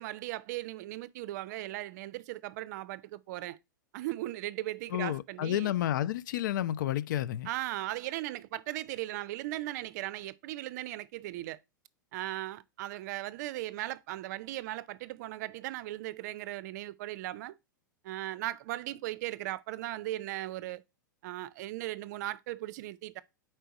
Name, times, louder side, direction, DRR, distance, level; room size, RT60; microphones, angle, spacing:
voice 1, 0.0-3.6 3.9-5.7 7.4-11.6 12.1-17.5 18.0-20.8 21.2-23.2, right 16 dB, 55° right, 0.5 m, -37 dB
voice 2, 4.9-7.5, left 12 dB, 65° left, 0.4 m, -31 dB
4.6 x 4.4 x 5.1 m
hypercardioid pair, 105°, 11 cm